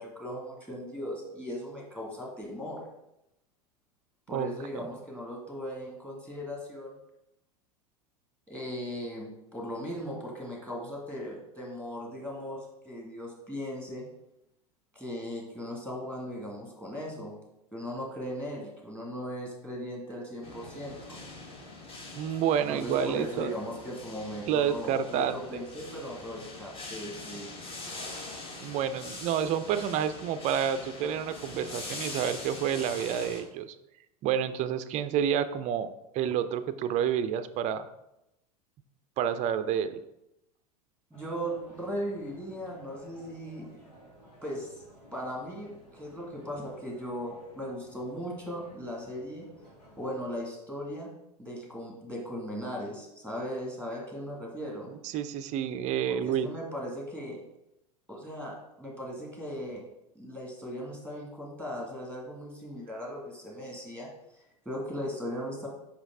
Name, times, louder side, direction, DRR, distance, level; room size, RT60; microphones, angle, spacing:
voice 1, 0.0-2.8 4.3-7.0 8.5-14.1 14.9-17.3 17.7-21.2 22.7-27.5 41.1-43.7 44.4-44.7 45.1-49.5 50.0-51.1 51.4-54.9 56.1-57.4 58.1-59.8 60.2-65.7, equal, 5° left, -2 dB, 1.9 m, -38 dB
voice 2, 4.3-4.9 22.1-23.5 24.5-25.6 28.6-33.7 34.2-37.9 39.2-40.0 55.0-56.5, right 9 dB, 35° right, 12 dB, 0.5 m, -29 dB
sound 1, 20.4-33.4, left 2 dB, 25° left, 1.5 m, -43 dB
sound 2, 41.1-50.4, equal, 90° left, 2.2 m, -55 dB
5.1 x 5.1 x 3.7 m, 0.87 s
figure-of-eight pair, 90°, 20 cm